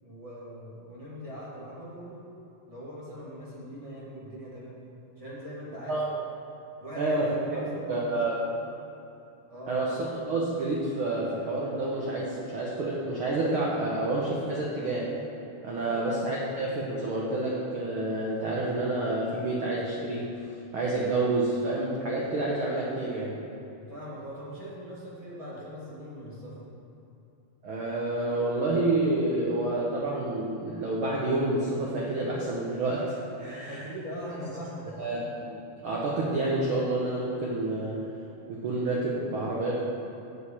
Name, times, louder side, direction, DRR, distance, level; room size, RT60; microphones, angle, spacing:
voice 1, 0.0-2.2 2.7-4.8 5.2-6.0 6.8-7.1 7.5-8.2 9.5-9.8 15.9-16.1 23.7-26.6 33.6-35.0, equal, 20° right, -7 dB, 1.1 m, -41 dB
voice 2, 7.0-8.3 9.7-15.2 15.6-20.3 20.7-23.4 27.6-33.8 35.0-38.1 38.5-39.8, right 2 dB, 75° right, -4 dB, 1.2 m, -29 dB
8.3 x 5.1 x 7.1 m, 2.8 s
omnidirectional pair, 3.6 m